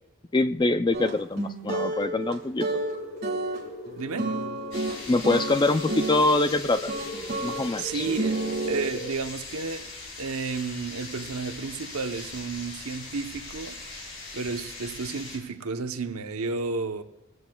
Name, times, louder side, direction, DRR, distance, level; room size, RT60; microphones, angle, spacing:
voice 1, 0.3-2.8 5.1-6.9 7.4-8.0, left 2 dB, 20° left, 0.4 m, -24 dB
sound 1, 0.9-6.3 6.9-7.6 8.0-8.9, right 2 dB, 45° right, 1.9 m, -30 dB
sound 2, 2.7-9.1, left 1 dB, 75° left, 1.8 m, -40 dB
voice 2, 3.9-4.3 7.8-8.4 8.7-9.9 10.2-17.0, right 4 dB, 80° right, 0.9 m, -32 dB
sound 3, 4.7-15.4, left 3 dB, 55° left, 3.9 m, -41 dB
20.0 x 15.5 x 2.3 m
head